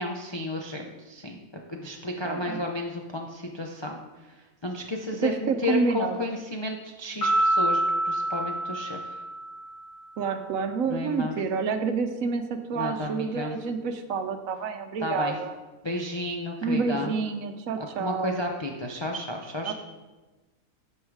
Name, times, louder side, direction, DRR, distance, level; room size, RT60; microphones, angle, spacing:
voice 1, 0.0-1.4 1.7-4.0 4.6-9.2 10.9-11.3 12.7-13.6 15.0-15.3 15.8-17.1 18.0-19.7, left 2 dB, 40° left, 1 dB, 0.4 m, -32 dB
voice 2, 2.2-2.6 5.2-6.2 10.2-15.5 16.6-18.4 19.6-19.7, right 5 dB, 70° right, 7 dB, 1.1 m, -28 dB
Piano, 7.2-9.8, right 1 dB, 60° left, 3.1 m, -26 dB
9.6 x 5.5 x 4.7 m, 1.2 s
omnidirectional pair, 1.6 m